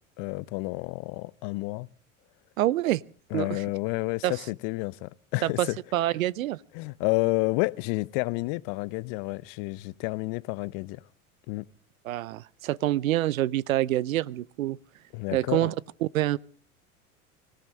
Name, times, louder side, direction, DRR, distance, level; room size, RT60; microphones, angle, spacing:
voice 1, 0.2-1.9 3.3-5.8 6.7-11.0 11.5-11.7 15.1-15.7, left 24 dB, 55° left, 0.8 m, -30 dB
voice 2, 2.6-3.0 3.3-3.6 4.2-4.3 5.4-6.6 12.0-14.8 15.3-15.7 16.0-16.4, right 14 dB, 80° right, 0.7 m, -26 dB
25.0 x 16.0 x 3.6 m
hypercardioid pair, 80°, 41 cm